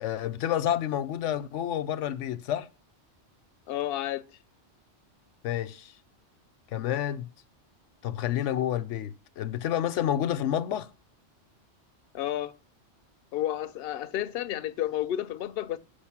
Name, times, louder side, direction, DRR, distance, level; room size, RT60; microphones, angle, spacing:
voice 1, 0.0-2.7 5.4-5.9 6.7-7.3 8.0-10.9, left 11 dB, 85° left, 1.0 m, -29 dB
voice 2, 3.7-4.2 12.1-12.5 13.3-15.8, left 12 dB, 65° left, 0.7 m, -31 dB
7.2 x 5.2 x 7.1 m
omnidirectional pair, 1.2 m